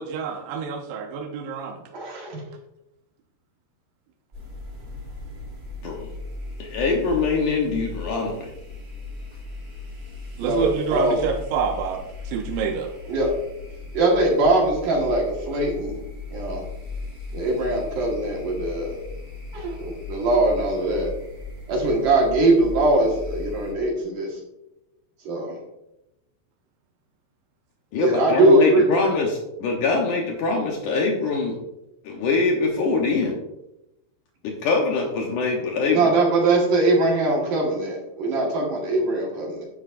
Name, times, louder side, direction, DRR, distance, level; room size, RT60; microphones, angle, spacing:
voice 1, 0.0-1.8 10.4-12.0 12.2-12.9, right 6 dB, 80° right, -1 dB, 3.1 m, -28 dB
voice 2, 1.9-2.4 10.4-11.2 13.1-13.3 13.9-16.0 16.3-16.6 17.3-19.0 19.5-21.1 21.7-24.4 25.2-25.6 28.0-28.8 35.8-39.7, right 2 dB, 55° right, -2 dB, 2.8 m, -21 dB
sound 1, 4.3-23.7, left 3 dB, 20° right, 3.0 m, -37 dB
voice 3, 6.6-8.5 27.9-31.6 32.0-33.4 34.4-36.1, left 3 dB, 85° left, 0 dB, 1.8 m, -23 dB
11.5 x 10.0 x 2.6 m, 0.90 s
omnidirectional pair, 5.3 m